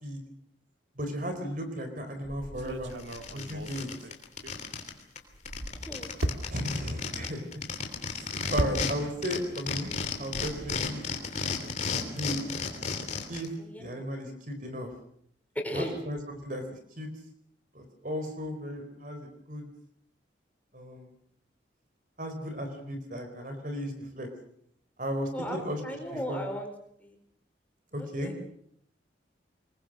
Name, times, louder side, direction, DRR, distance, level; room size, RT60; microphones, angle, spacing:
voice 1, 1.0-3.0 3.3-3.9 6.5-7.6 8.1-9.9 10.2-11.0 12.0-12.4 13.3-13.5 13.8-14.9 15.7-17.1 17.7-19.7 20.7-21.1 22.2-24.3 25.0-25.8 26.1-26.4 27.9-28.4, equal, 45° right, 6 dB, 4.0 m, -35 dB
sound 1, 2.2-4.9 5.3-9.4 9.6-10.9, right 1 dB, 80° right, 2.1 m, -37 dB
sound 2, 2.6-2.7 3.0-4.9 5.2-5.3 5.5-8.9 9.2-13.5, left 5 dB, 40° left, 3.2 m, -33 dB
voice 2, 5.8-6.1 13.6-13.9 15.5-16.0 25.3-25.6 25.8-26.7 27.0-27.2 28.0-28.4, equal, 10° left, 3 dB, 4.4 m, -36 dB
25.0 x 21.5 x 6.4 m, 0.68 s
head